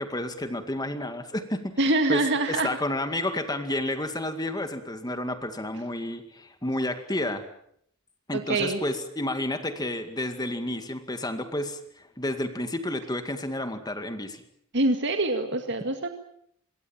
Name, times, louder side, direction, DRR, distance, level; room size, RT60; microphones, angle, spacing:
voice 1, 0.0-1.8 2.1-7.4 8.3-14.4, left 1 dB, 20° left, 8 dB, 2.1 m, -31 dB
voice 2, 1.8-2.7 8.3-8.8 14.7-16.1, right 2 dB, 60° right, 5 dB, 2.0 m, -25 dB
26.0 x 22.5 x 7.4 m, 0.68 s
head